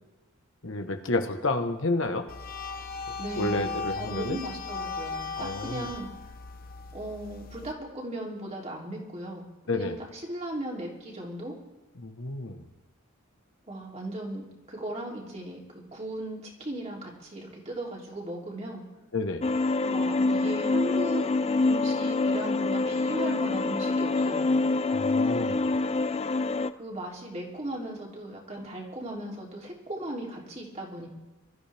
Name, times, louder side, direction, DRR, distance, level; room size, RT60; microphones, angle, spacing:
voice 1, 0.6-2.3 3.4-4.4 5.4-5.9 9.7-10.0 12.0-12.7 19.1-19.4 24.9-25.7, left 2 dB, 65° left, 6 dB, 1.3 m, -30 dB
sound 1, 2.3-7.7, left 4 dB, 45° left, 1.0 m, -37 dB
voice 2, 3.2-6.1 6.9-9.4 9.7-11.5 13.7-18.8 19.9-21.3 21.6-24.7 26.7-31.1, right 1 dB, 30° right, -2 dB, 3.1 m, -37 dB
sound 2, 19.4-26.7, left 3 dB, 30° left, 0.4 m, -26 dB
23.5 x 13.5 x 3.5 m, 1.0 s
head